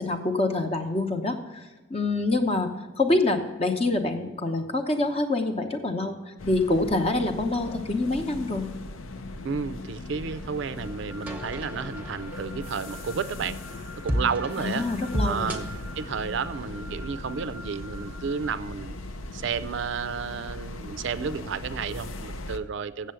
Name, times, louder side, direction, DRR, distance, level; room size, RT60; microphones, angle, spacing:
voice 1, 0.0-2.7 3.0-8.6 14.6-15.5, left 2 dB, 30° left, 5 dB, 0.8 m, -26 dB
sound 1, 6.4-22.6, left 2 dB, 80° left, 0.7 m, -39 dB
voice 2, 9.4-13.6 14.0-14.9 15.2-15.7 16.0-18.9 19.3-23.1, right 6 dB, 65° right, 14 dB, 0.4 m, -31 dB
sound 2, 10.3-16.8, equal, 10° right, 0.8 m, -35 dB
sound 3, 10.8-18.5, right 1 dB, 60° left, 0.9 m, -46 dB
7.6 x 7.5 x 6.8 m, 1.3 s
head